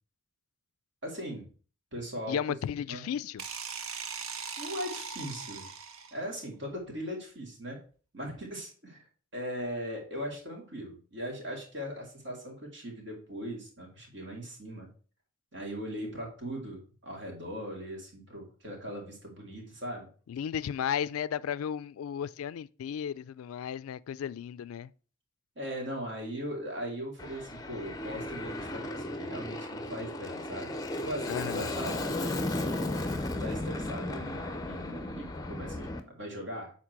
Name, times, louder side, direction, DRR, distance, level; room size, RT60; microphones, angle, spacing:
voice 1, 1.0-1.5 1.9-2.4 2.9-3.0 4.6-5.7 6.1-7.8 8.1-9.0 9.3-14.9 15.5-20.1 25.6-32.8 33.4-36.7, equal, 55° right, 2.5 m, -39 dB
voice 2, 2.3-3.4 20.3-24.9 31.3-31.7, left 8 dB, 85° left, 0.3 m, -34 dB
sound 1, 3.4-6.3, right 6 dB, 80° right, 0.8 m, -40 dB
Aircraft, 27.2-36.0, left 1 dB, 20° left, 0.6 m, -35 dB
7.4 x 4.3 x 4.5 m
head